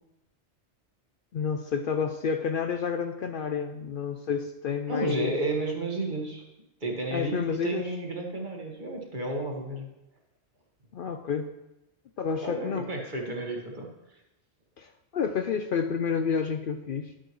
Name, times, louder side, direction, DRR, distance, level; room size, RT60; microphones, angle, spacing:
voice 1, 1.3-5.3 7.1-7.9 10.9-11.5 12.2-12.9 14.8-17.1, left 6 dB, 60° left, 7 dB, 0.6 m, -30 dB
voice 2, 4.9-6.4 6.8-9.9 12.4-14.2, right 2 dB, 45° right, 0 dB, 1.6 m, -32 dB
11.0 x 8.5 x 3.1 m, 0.93 s
omnidirectional pair, 1.2 m